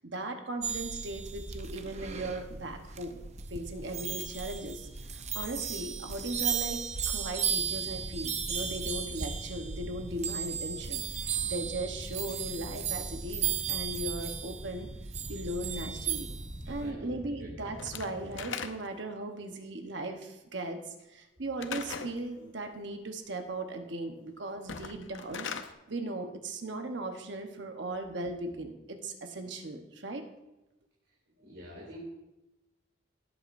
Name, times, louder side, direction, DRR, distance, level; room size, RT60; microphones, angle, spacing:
voice 1, 0.0-3.1 3.5-14.9 15.3-16.3 16.7-25.5 25.9-30.2, right 2 dB, 70° right, 5 dB, 1.0 m, -38 dB
sound 1, 0.6-16.9, right 7 dB, 35° right, 0.7 m, -35 dB
sound 2, 7.6-18.4, equal, 15° left, 1.3 m, -46 dB
voice 2, 16.8-17.1 17.4-17.7 31.0-32.0, left 1 dB, 85° right, -4 dB, 2.7 m, -47 dB
Slam / Wood, 17.8-19.1 21.6-22.2 24.6-25.7, left 6 dB, 85° left, 0.7 m, -39 dB
17.5 x 8.5 x 2.6 m, 0.99 s
head